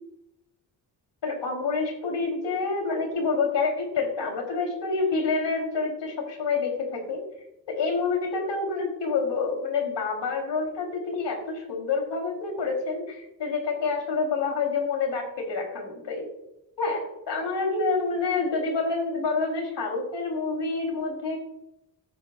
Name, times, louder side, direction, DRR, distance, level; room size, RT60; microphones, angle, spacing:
voice 1, 1.2-7.2 7.7-16.3 16.8-21.4, left 4 dB, 85° left, 1 dB, 3.8 m, -28 dB
18.0 x 8.9 x 2.5 m, 0.90 s
cardioid pair, 90°, 42 cm